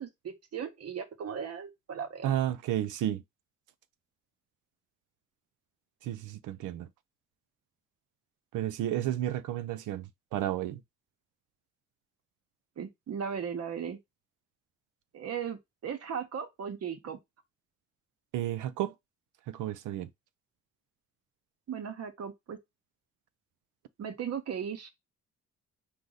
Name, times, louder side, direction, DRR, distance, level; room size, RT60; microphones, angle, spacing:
voice 1, 0.0-2.3 12.8-14.0 15.1-17.2 21.7-22.6 24.0-24.9, right 7 dB, 55° right, 1.1 m, -37 dB
voice 2, 2.2-3.2 6.0-6.9 8.5-10.8 18.3-18.9 19.5-20.1, right 12 dB, 85° right, 0.6 m, -32 dB
4.9 x 2.5 x 4.0 m
cardioid pair, 90°, 30 cm